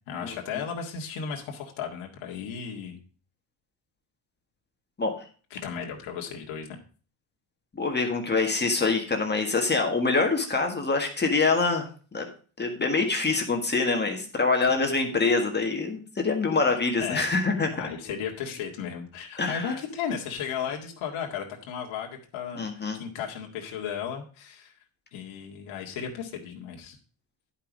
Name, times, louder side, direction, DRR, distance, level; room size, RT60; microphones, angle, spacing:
voice 1, 0.1-3.0 5.5-6.8 17.0-17.3 17.7-24.7 25.1-27.0, left 7 dB, 80° left, 0 dB, 2.0 m, -35 dB
voice 2, 7.7-11.9 12.1-12.3 12.6-17.7 19.4-19.7 22.6-23.0, left 3 dB, 20° left, 3 dB, 1.7 m, -25 dB
10.5 x 5.8 x 5.1 m, 0.39 s
cardioid pair, 125°, 48 cm